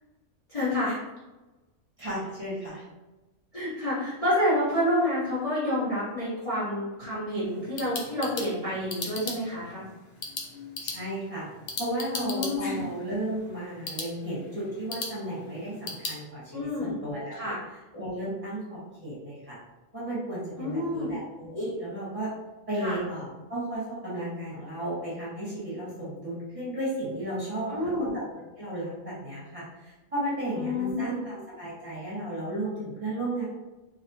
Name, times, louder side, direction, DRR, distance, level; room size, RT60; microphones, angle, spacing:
voice 1, 0.5-0.9 3.5-9.8 12.1-12.8 16.5-17.0 17.3-17.6 20.6-21.1 22.8-23.0 27.7-28.1 30.5-31.3, left 1 dB, 30° left, -11 dB, 0.9 m, -28 dB
voice 2, 2.0-2.8 10.8-11.5 11.8-17.6 17.9-19.6 19.9-22.3 22.7-28.1 28.6-33.4, right 1 dB, 30° right, -9 dB, 1.3 m, -34 dB
sound 1, 7.4-16.2, left 3 dB, 60° left, 0.7 m, -39 dB
3.1 x 2.7 x 2.8 m, 1.1 s
omnidirectional pair, 1.3 m